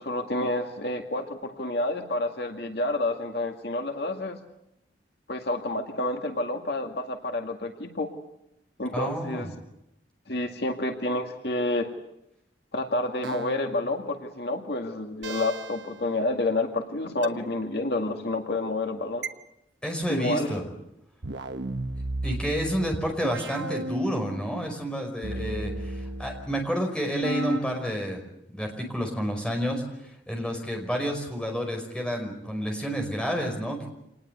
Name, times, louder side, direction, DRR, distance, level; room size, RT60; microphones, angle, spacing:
voice 1, 0.0-4.4 5.3-8.1 8.8-9.5 10.3-11.9 12.7-19.2 20.1-20.6 25.3-25.5, left 2 dB, 65° left, 4 dB, 2.2 m, -29 dB
voice 2, 8.9-9.5 19.8-20.6 22.2-28.2 28.5-33.9, equal, 5° left, 2 dB, 5.3 m, -30 dB
sound 1, 13.2-14.0 15.2-16.0 17.2-17.3 19.2-19.3 21.2-24.6 25.2-26.7 27.2-27.6, right 1 dB, 80° right, 1.2 m, -34 dB
26.5 x 19.5 x 8.1 m, 0.83 s
head